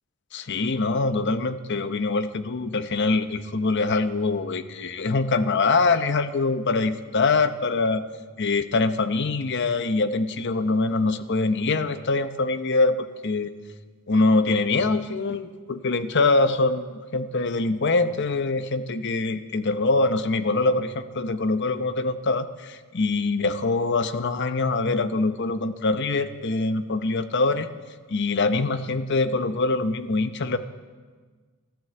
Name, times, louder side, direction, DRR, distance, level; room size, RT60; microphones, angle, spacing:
voice 1, 0.3-8.0 8.4-13.5 14.1-27.7 28.1-30.6, left 3 dB, 55° left, 10 dB, 0.8 m, -24 dB
14.0 x 12.5 x 7.7 m, 1.5 s
head